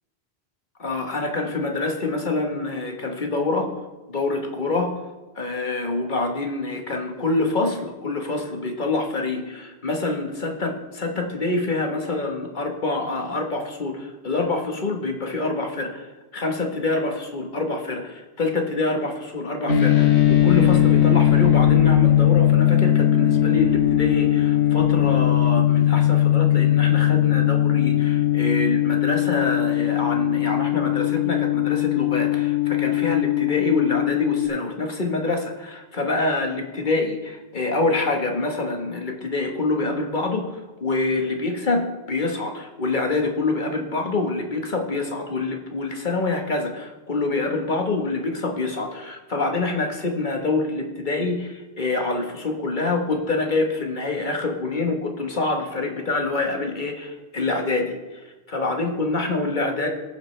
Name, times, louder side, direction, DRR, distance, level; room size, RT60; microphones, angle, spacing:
voice 1, 0.8-3.7 4.1-4.9 5.3-16.1 16.3-40.5 40.8-58.2 58.5-59.9, left 2 dB, 45° left, 3 dB, 1.4 m, -26 dB
sound 1, 19.7-34.5, left 12 dB, 85° left, 1.6 m, -19 dB
19.5 x 7.6 x 3.3 m, 1.2 s
omnidirectional pair, 1.1 m